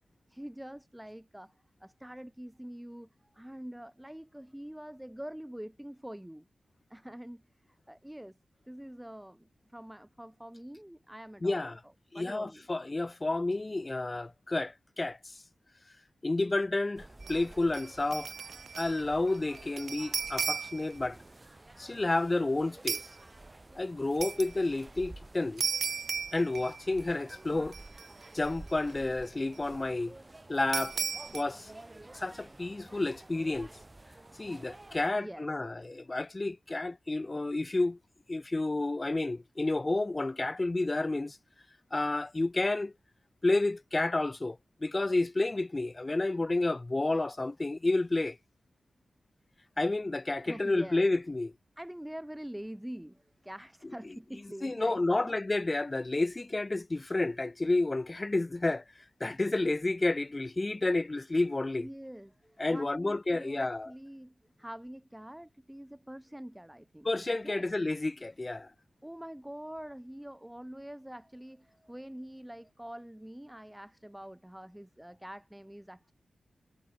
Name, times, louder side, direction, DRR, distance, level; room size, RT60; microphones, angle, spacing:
voice 1, 0.3-1.5 1.8-6.5 6.9-8.4 8.7-11.7 12.1-12.7 35.1-35.5 50.5-51.0 51.8-55.4 61.8-67.1 67.4-67.7 69.0-76.1, equal, 5° right, 4.6 m, -45 dB
voice 2, 11.4-11.8 12.1-15.2 16.2-18.3 18.8-21.2 21.8-23.0 23.8-25.7 26.3-27.7 28.3-30.1 30.5-31.0 31.3-31.7 32.1-33.7 34.4-38.0 38.3-41.4 41.9-42.9 43.4-48.4 49.8-51.5 54.6-58.8 59.2-61.9 62.6-63.9 67.0-68.7, left 2 dB, 30° left, 0.8 m, -30 dB
sound 1, 17.0-35.1, right 2 dB, 25° right, 3.0 m, -51 dB
sound 2, 17.2-17.4 17.7-19.0 19.3-20.9 22.9-23.1 24.2-24.5 25.6-27.0 27.3-27.4 27.7-28.5 30.7-31.4, right 6 dB, 75° right, 1.8 m, -35 dB
cardioid pair, 60°, 0 cm